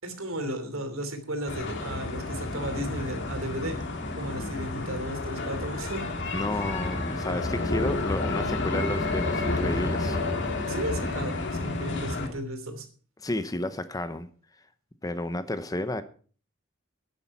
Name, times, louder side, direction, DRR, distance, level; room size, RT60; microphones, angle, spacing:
voice 1, 0.0-3.8 4.1-6.0 10.7-12.9, equal, 75° right, 7 dB, 3.0 m, -34 dB
sound 1, 1.5-12.3, left 2 dB, 60° left, 2.6 m, -30 dB
voice 2, 6.3-10.2 13.2-14.3 15.0-16.0, left 1 dB, 15° left, 12 dB, 0.8 m, -31 dB
11.5 x 10.5 x 5.4 m, 0.42 s
head